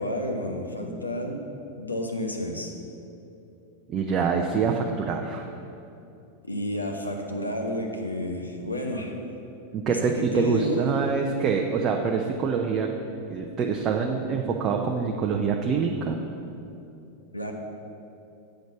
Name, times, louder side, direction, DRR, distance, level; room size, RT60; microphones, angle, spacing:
voice 1, 0.0-1.4 1.7-2.7 6.4-9.1 9.9-10.0 10.3-10.9 17.3-17.5, left 1 dB, 85° left, 2 dB, 0.9 m, -30 dB
voice 2, 3.9-5.5 9.7-12.9 13.3-16.2, right 5 dB, 30° right, 1 dB, 0.6 m, -25 dB
7.8 x 5.2 x 7.0 m, 2.8 s
figure-of-eight pair, 90°, 0 cm